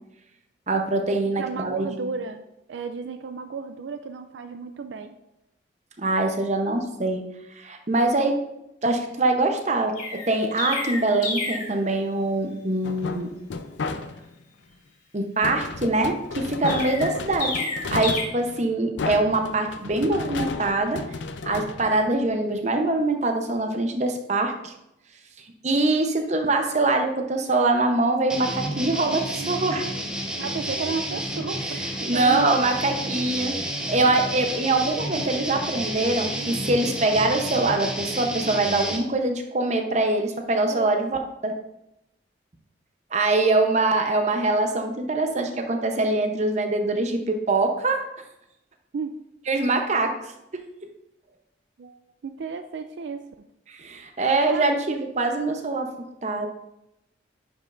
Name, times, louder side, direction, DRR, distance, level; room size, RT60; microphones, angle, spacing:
voice 1, 0.7-2.1 6.0-7.2 7.5-8.4 8.8-13.4 15.1-17.6 17.9-21.0 21.4-24.7 25.4-29.9 32.0-41.6 43.1-48.0 49.5-50.6 53.7-55.9 56.2-56.5, right 2 dB, 40° right, 4 dB, 0.7 m, -24 dB
voice 2, 1.4-2.4 2.7-5.1 30.4-33.1 40.7-40.9 48.9-49.2 51.8-53.5 54.5-54.7, right 5 dB, 75° right, 8 dB, 0.4 m, -33 dB
Chirp tweet, 9.9-11.7 16.6-18.2, left 3 dB, 40° left, 1.6 m, -30 dB
sound 1, 12.8-14.4 15.4-22.6, left 3 dB, 80° left, 0.5 m, -33 dB
sound 2, 28.3-39.0, right 1 dB, 5° right, 0.6 m, -31 dB
9.6 x 5.3 x 2.5 m, 0.87 s
head